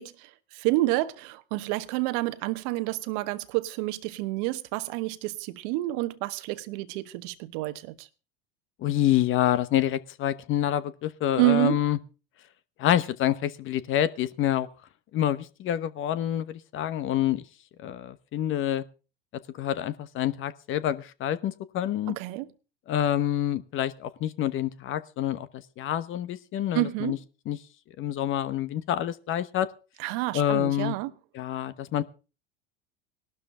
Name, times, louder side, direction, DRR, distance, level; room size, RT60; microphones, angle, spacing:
voice 1, 0.0-8.1 11.4-11.8 22.1-22.5 26.7-27.2 30.0-31.1, right 18 dB, 60° right, 1.2 m, -29 dB
voice 2, 8.8-12.0 12.8-14.7 15.1-17.4 17.8-18.8 19.3-22.2 22.9-27.2 27.5-27.6 28.0-29.7 30.3-31.0 31.3-32.0, left 11 dB, 45° left, 1.1 m, -27 dB
18.5 x 12.5 x 3.8 m
hypercardioid pair, 85°, 29 cm